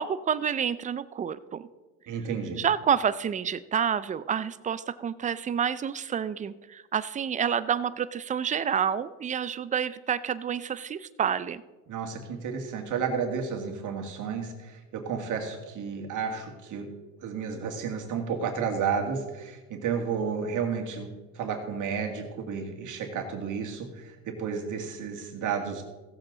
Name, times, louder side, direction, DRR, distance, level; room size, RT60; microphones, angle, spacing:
voice 1, 0.0-1.7 2.6-11.6, right 8 dB, 20° right, 15 dB, 0.4 m, -28 dB
voice 2, 2.1-2.6 11.9-16.9 17.2-25.8, right 6 dB, 50° right, 3 dB, 2.0 m, -32 dB
16.5 x 7.5 x 3.9 m, 1.2 s
supercardioid pair, 110°, 41 cm